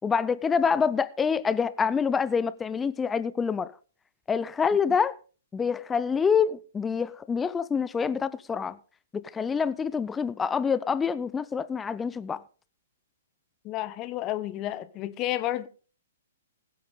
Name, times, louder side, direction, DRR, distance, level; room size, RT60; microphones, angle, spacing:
voice 1, 0.0-3.7 4.3-5.2 5.5-8.8 9.1-12.4, left 6 dB, 10° left, 0.6 m, -26 dB
voice 2, 13.6-15.7, left 14 dB, 25° left, 1.0 m, -31 dB
21.0 x 8.6 x 3.7 m
figure-of-eight pair, 120°, 0 cm